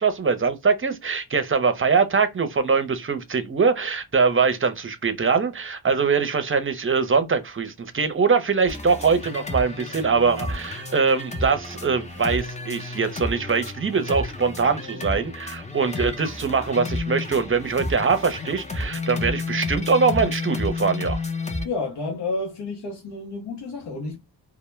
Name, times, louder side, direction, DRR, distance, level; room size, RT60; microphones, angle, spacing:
voice 1, 0.0-21.2, right 5 dB, 30° right, 0.5 m, -22 dB
sound 1, 8.7-21.7, left 2 dB, 15° left, 0.5 m, -31 dB
voice 2, 21.6-24.2, left 3 dB, 85° left, 0.7 m, -30 dB
2.1 x 2.0 x 3.0 m
cardioid pair, 60°, 40 cm